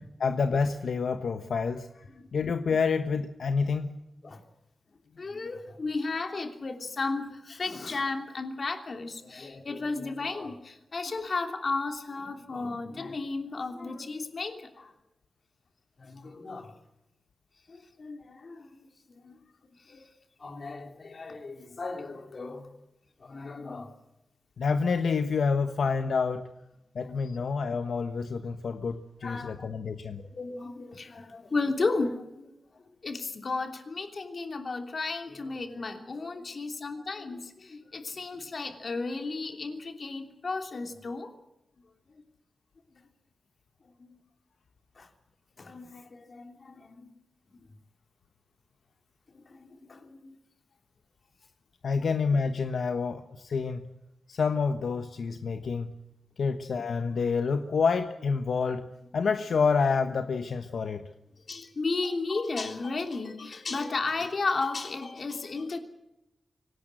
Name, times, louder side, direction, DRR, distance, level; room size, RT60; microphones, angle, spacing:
voice 1, 0.2-2.0 2.3-3.9 24.6-26.4 26.9-30.2 51.8-53.9 54.3-55.9 56.4-58.9 59.1-61.1, left 5 dB, 75° left, 8 dB, 1.2 m, -28 dB
voice 2, 5.2-14.9 16.0-16.8 17.7-19.4 19.8-20.1 20.4-22.7 23.2-24.0 27.0-27.2 29.2-29.7 30.2-41.3 42.1-42.2 44.0-44.2 45.0-45.1 45.6-47.1 49.3-50.4 52.0-52.1 61.4-65.8, left 3 dB, 45° left, 6 dB, 3.1 m, -34 dB
25.0 x 18.0 x 7.7 m, 0.91 s
wide cardioid pair, 135°, 0 cm